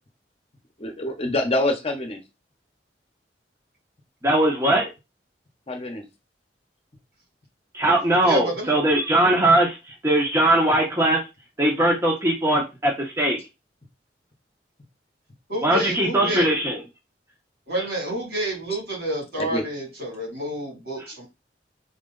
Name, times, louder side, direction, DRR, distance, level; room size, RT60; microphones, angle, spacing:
voice 1, 0.8-2.2 5.7-6.0 19.4-19.6, left 1 dB, 35° left, 4 dB, 0.8 m, -26 dB
voice 2, 4.2-4.9 7.7-9.8 10.0-11.2 11.6-13.4 15.6-16.8, right 1 dB, 15° right, -1 dB, 0.9 m, -20 dB
voice 3, 8.2-8.7 15.5-16.5 17.7-21.3, right 1 dB, 70° right, -2 dB, 2.8 m, -29 dB
3.8 x 3.1 x 3.8 m, 0.25 s
head